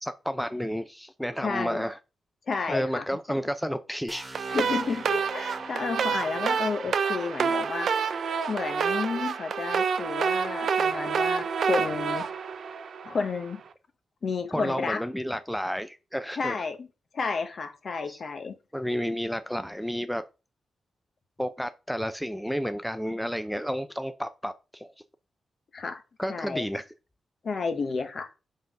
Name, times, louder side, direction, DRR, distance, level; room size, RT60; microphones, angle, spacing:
voice 1, 0.0-2.0 2.7-4.2 14.5-16.6 18.1-18.2 18.7-20.2 21.4-24.9 26.2-26.8, equal, ahead, 0.5 m, -31 dB
voice 2, 1.4-1.8 2.5-3.4 4.5-12.3 13.0-13.6 14.2-15.0 16.3-16.9 17.1-18.5 25.7-26.0 26.3-26.6 27.4-28.3, left 4 dB, 55° left, 1.0 m, -31 dB
sound 1, 4.1-7.9, right 1 dB, 20° right, 1.6 m, -44 dB
sound 2, 4.3-13.4, right 6 dB, 70° right, 0.5 m, -28 dB
5.5 x 3.8 x 5.3 m
cardioid pair, 95°, 0 cm